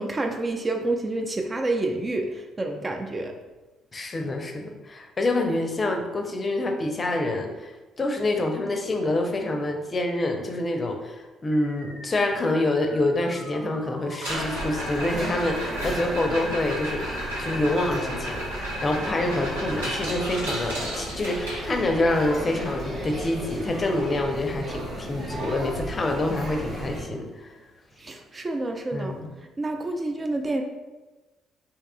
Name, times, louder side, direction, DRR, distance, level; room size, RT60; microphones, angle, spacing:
voice 1, 0.0-3.3 28.0-29.1 29.6-30.6, right 2 dB, 30° right, 4 dB, 0.4 m, -28 dB
voice 2, 3.9-7.7 8.0-27.5 28.9-29.3, left 2 dB, 35° left, 3 dB, 0.5 m, -27 dB
sound 1, 11.5-16.5, equal, 15° right, 1.2 m, -44 dB
sound 2, 14.1-22.1 24.3-24.4 24.7-25.0 25.4-25.5 26.1-26.2 28.1-28.2, equal, 85° right, 0.8 m, -33 dB
sound 3, 14.3-27.0, right 1 dB, 50° right, 1.0 m, -35 dB
3.5 x 2.9 x 2.3 m, 1.2 s
figure-of-eight pair, 45°, 0 cm